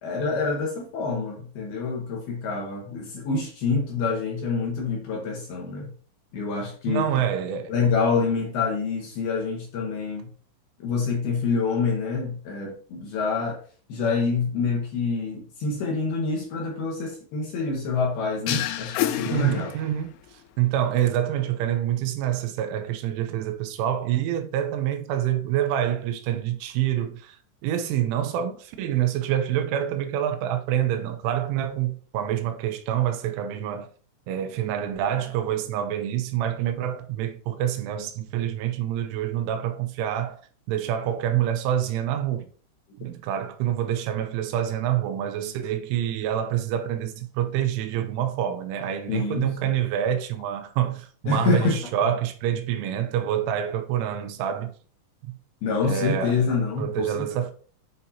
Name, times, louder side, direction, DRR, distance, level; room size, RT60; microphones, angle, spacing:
voice 1, 0.0-5.9 6.3-7.1 7.7-10.3 10.8-13.6 13.9-19.7 49.1-49.7 51.3-51.8 55.6-57.3, left 4 dB, 65° left, 2.8 m, -26 dB
voice 2, 6.9-7.7 19.3-27.4 27.6-33.9 34.3-40.4 40.7-42.5 43.0-54.7 55.2-55.3 55.8-56.4 56.8-57.5, right 10 dB, 80° right, 3.1 m, -27 dB
sound 1, 18.5-20.2, left 13 dB, 80° left, 3.1 m, -29 dB
8.8 x 5.4 x 2.8 m
omnidirectional pair, 5.7 m